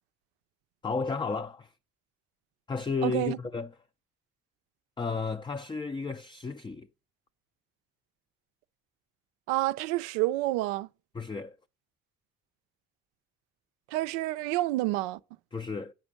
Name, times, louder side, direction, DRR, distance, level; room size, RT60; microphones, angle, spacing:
voice 1, 0.8-1.7 2.7-3.7 5.0-6.9 11.1-11.6 15.5-15.9, left 4 dB, 15° left, 0.4 m, -33 dB
voice 2, 3.0-3.4 9.5-10.9 13.9-15.2, right 17 dB, 90° right, 0.5 m, -28 dB
8.8 x 5.1 x 6.3 m
hypercardioid pair, 50°, 40 cm